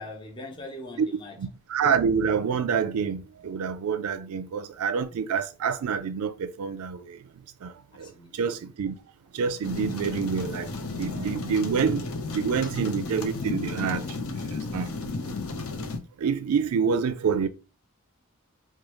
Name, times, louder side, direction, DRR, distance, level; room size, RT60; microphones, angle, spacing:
voice 1, 0.0-1.4 5.1-5.2 8.0-8.4 16.8-16.9, left 1 dB, 20° left, 0.7 m, -41 dB
voice 2, 1.4-7.2 7.6-7.7 8.0-8.9 9.3-10.7 11.0-12.0 12.3-14.0 14.5-14.9 16.2-17.5, right 6 dB, 80° right, 0.4 m, -27 dB
sound 1, 9.6-16.0, left 3 dB, 75° left, 0.7 m, -33 dB
4.8 x 2.3 x 3.0 m
head